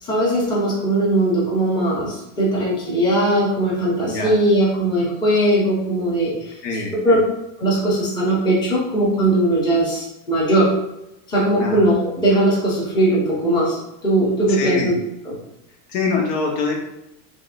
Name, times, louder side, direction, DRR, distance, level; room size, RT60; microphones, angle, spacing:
voice 1, 0.0-7.2 7.6-10.7 11.3-13.8 14.0-14.9 15.2-15.4, right 1 dB, 10° left, -5 dB, 0.6 m, -19 dB
voice 2, 6.6-7.2 11.6-11.8 14.5-14.9 15.9-16.8, left 3 dB, 85° left, -1 dB, 1.3 m, -24 dB
3.7 x 3.5 x 2.5 m, 0.90 s
supercardioid pair, 160°, 47 cm